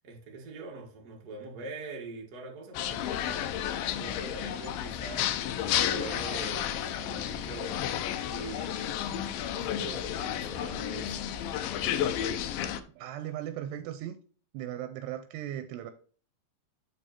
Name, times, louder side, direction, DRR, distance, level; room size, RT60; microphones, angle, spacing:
voice 1, 0.0-3.4 3.9-8.0 8.3-11.2, right 3 dB, 55° right, 1.0 m, -43 dB
sound 1, 2.7-12.8, left 10 dB, 80° left, 2.1 m, -32 dB
voice 2, 12.9-14.2 14.5-15.9, right 11 dB, 85° right, 2.6 m, -37 dB
7.1 x 5.5 x 4.3 m
omnidirectional pair, 4.9 m